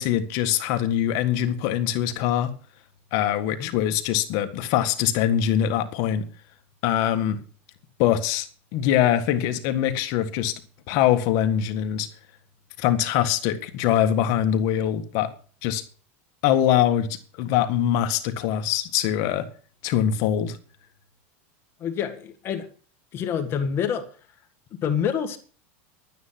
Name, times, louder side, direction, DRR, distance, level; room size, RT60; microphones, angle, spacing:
voice 1, 0.0-2.5 3.1-6.2 6.8-7.4 8.0-8.5 8.7-10.5 10.9-12.1 12.8-15.3 15.6-15.8 16.4-19.5 19.8-20.6, left 10 dB, 55° left, 1.6 m, -23 dB
voice 2, 21.8-22.7 23.1-24.1 24.8-25.4, left 8 dB, 35° left, 1.8 m, -27 dB
11.5 x 9.4 x 5.9 m
supercardioid pair, 140°, 7 cm